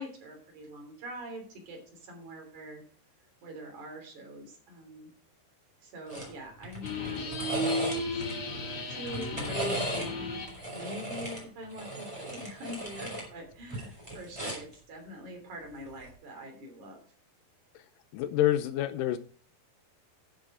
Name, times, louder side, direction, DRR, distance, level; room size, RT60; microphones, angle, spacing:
voice 1, 0.0-2.8 3.4-5.1 5.8-8.2 8.9-17.0, equal, 50° right, 2 dB, 4.4 m, -44 dB
sound 1, 6.1-6.3 6.6-8.3 9.0-10.1 10.5-13.3 13.6-14.7 15.9-16.1, right 1 dB, 5° right, 4.3 m, -37 dB
sound 2, 6.8-10.6, left 1 dB, 45° left, 2.1 m, -34 dB
voice 2, 18.1-19.2, left 13 dB, 85° left, 12 dB, 1.9 m, -27 dB
12.0 x 7.7 x 4.9 m, 0.43 s
omnidirectional pair, 4.7 m